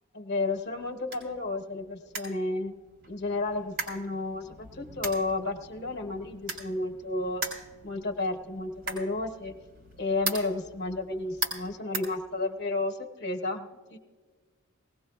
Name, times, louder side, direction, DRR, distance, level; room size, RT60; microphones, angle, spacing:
voice 1, 0.1-2.7 3.1-7.4 7.8-9.5 10.0-14.0, left 2 dB, 55° left, 5 dB, 0.9 m, -32 dB
sound 1, 0.5-12.8, right 3 dB, 70° right, 3.6 m, -40 dB
20.0 x 17.5 x 2.3 m, 1.5 s
head